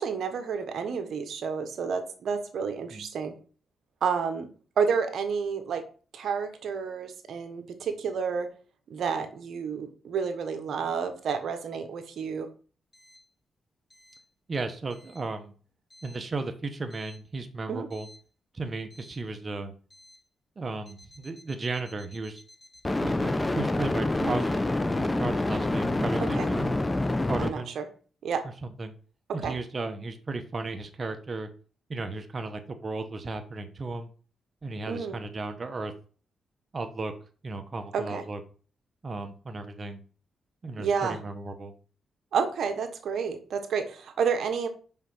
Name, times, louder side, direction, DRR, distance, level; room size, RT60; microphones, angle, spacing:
voice 1, 0.0-3.3 4.0-4.5 4.8-5.8 6.1-8.5 8.9-12.5 17.7-17.9 26.3-26.5 27.4-27.9 28.2-28.4 29.4-29.5 34.9-35.2 37.9-38.2 40.8-41.2 42.3-44.7, right 6 dB, 70° right, 7 dB, 1.2 m, -30 dB
voice 2, 14.5-15.5 16.0-18.1 18.5-19.7 20.6-22.4 23.0-24.6 25.1-26.7 27.3-27.7 28.8-28.9 29.3-31.5 31.9-34.1 34.6-35.9 36.7-37.1 37.4-38.4 39.0-40.0 40.6-41.7, right 3 dB, 35° right, 6 dB, 1.0 m, -35 dB
sound 1, 18.0-18.1 22.8-27.5, left 2 dB, 20° left, 1.0 m, -27 dB
5.7 x 5.7 x 5.6 m, 0.40 s
cardioid pair, 85°, 0 cm